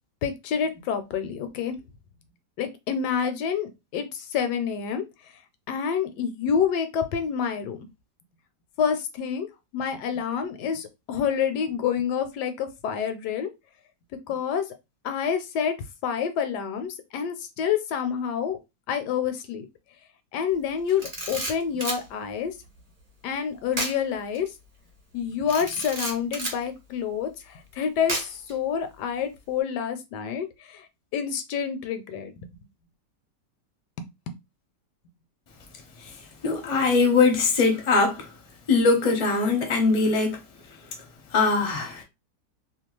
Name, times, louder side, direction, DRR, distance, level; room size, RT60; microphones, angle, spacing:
voice 1, 0.2-1.8 2.6-5.0 5.7-7.9 8.8-9.5 9.7-13.5 14.3-14.7 15.0-15.7 16.0-18.6 18.9-19.7 20.3-22.5 23.2-24.5 25.1-30.9 31.1-32.5 34.0-34.3, left 7 dB, 75° left, 1.1 m, -28 dB
Camera, 20.9-22.0 23.7-24.0 24.3-24.5 25.5-26.6 28.1-28.5, right 1 dB, 25° right, 0.8 m, -31 dB
voice 2, 36.4-38.3 38.7-40.4 41.3-42.0, left 4 dB, 35° left, 0.5 m, -21 dB
2.8 x 2.3 x 3.0 m
omnidirectional pair, 1.9 m